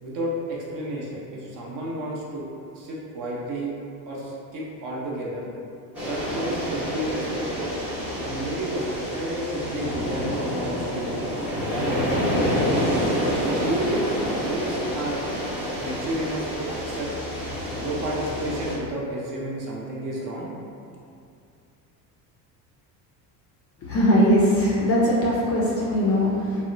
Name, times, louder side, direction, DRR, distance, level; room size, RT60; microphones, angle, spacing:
voice 1, 0.0-2.5 2.7-3.7 4.1-5.4 6.0-7.7 8.2-11.2 11.7-13.0 13.5-15.2 15.8-17.1 17.8-20.5, right 1 dB, 40° right, -4 dB, 0.7 m, -31 dB
sound 1, 5.9-18.8, equal, 5° right, 0.8 m, -28 dB
voice 2, 23.8-26.6, equal, 30° left, -5 dB, 0.4 m, -20 dB
2.7 x 2.1 x 2.5 m, 2.4 s
supercardioid pair, 85°, 49 cm